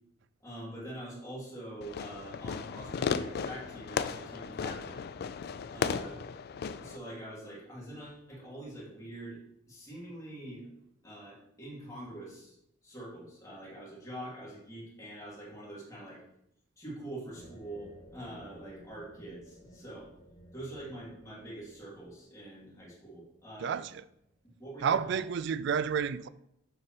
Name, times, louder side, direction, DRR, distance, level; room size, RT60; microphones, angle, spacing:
voice 1, 0.4-5.1 5.7-6.2 6.8-9.4 9.7-10.7 11.0-12.6 12.8-16.2 16.8-20.1 20.5-23.8 24.4-25.2, right 1 dB, 20° left, 2.6 m, -44 dB
Fireworks, 1.8-7.0, left 6 dB, 55° left, 0.3 m, -35 dB
sound 1, 17.3-24.6, equal, 35° left, 1.3 m, -56 dB
voice 2, 24.8-26.3, right 7 dB, 65° right, 0.3 m, -30 dB
7.0 x 6.7 x 3.0 m
head